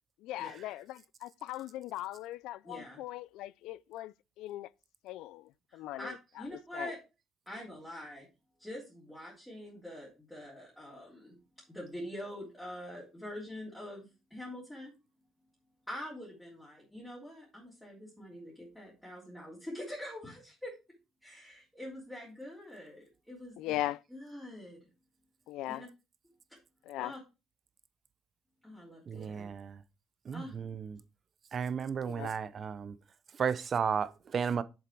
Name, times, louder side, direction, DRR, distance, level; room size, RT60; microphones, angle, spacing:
voice 1, 0.2-4.7 5.0-6.2 6.7-6.9 23.6-24.0 25.5-25.9 26.8-27.1 32.0-32.3, left 15 dB, 80° left, 0.4 m, -39 dB
voice 2, 2.6-3.0 5.7-7.0 7.4-8.3 8.6-11.3 11.7-14.9 15.9-20.7 21.2-24.8 25.7-25.9 27.0-27.2 28.6-29.5 30.3-30.6, left 1 dB, 5° left, 3.3 m, -45 dB
voice 3, 29.1-29.8 30.3-31.0 31.5-32.9 33.4-34.6, right 6 dB, 35° right, 0.6 m, -33 dB
7.4 x 7.1 x 4.6 m
cardioid pair, 145°, 0 cm